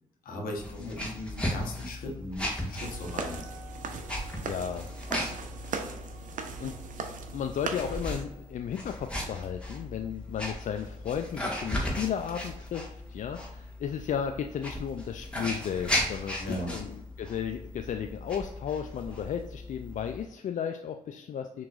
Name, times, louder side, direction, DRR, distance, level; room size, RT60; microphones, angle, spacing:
voice 1, 0.2-3.4 16.4-16.7, left 1 dB, 80° left, 1 dB, 1.1 m, -37 dB
sound 1, 0.6-20.2, left 1 dB, 5° left, 1.6 m, -37 dB
Wind instrument woodwind instrument, 2.8-8.6, right 5 dB, 15° right, 0.7 m, -56 dB
sound 2, 2.8-8.2, right 5 dB, 65° right, 0.7 m, -39 dB
voice 2, 4.5-4.9 6.6-6.7 7.3-16.4 16.7-21.7, left 8 dB, 60° left, 6 dB, 0.4 m, -34 dB
6.0 x 3.0 x 2.5 m, 0.88 s
supercardioid pair, 50°, 14 cm